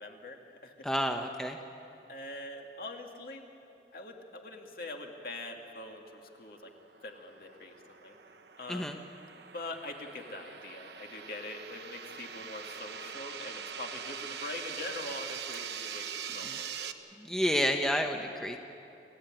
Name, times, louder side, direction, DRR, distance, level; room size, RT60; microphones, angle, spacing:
voice 1, 0.0-0.9 2.1-3.4 3.9-6.7 7.0-8.2 8.6-8.9 9.5-16.9, left 2 dB, 55° left, 2 dB, 2.3 m, -43 dB
voice 2, 0.8-1.6 8.7-9.0 16.4-16.5 17.2-18.6, equal, 5° left, 4 dB, 0.8 m, -30 dB
sound 1, 6.5-16.9, right 7 dB, 75° right, 1.1 m, -43 dB
28.5 x 16.0 x 9.0 m, 2.8 s
head